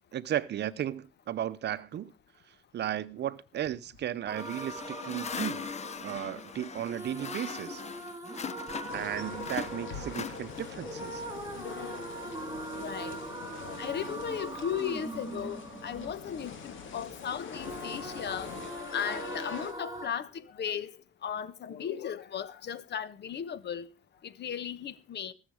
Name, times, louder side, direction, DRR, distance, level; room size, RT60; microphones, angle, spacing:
voice 1, 0.1-2.1 2.7-5.7 6.0-7.8 8.9-11.2, right 11 dB, 60° right, 0.7 m, -35 dB
sound 1, 4.3-17.2 17.5-20.1, right 2 dB, 20° right, 3.1 m, -42 dB
sound 2, 4.4-9.1 9.4-10.9, left 7 dB, 35° left, 0.7 m, -40 dB
sound 3, 8.9-19.7, left 6 dB, 75° left, 2.8 m, -43 dB
voice 2, 12.8-13.2 13.6-18.5 18.9-20.9 21.2-23.9 24.2-25.3, left 8 dB, 60° left, 1.1 m, -36 dB
20.5 x 7.2 x 4.9 m
cardioid pair, 90°, 20 cm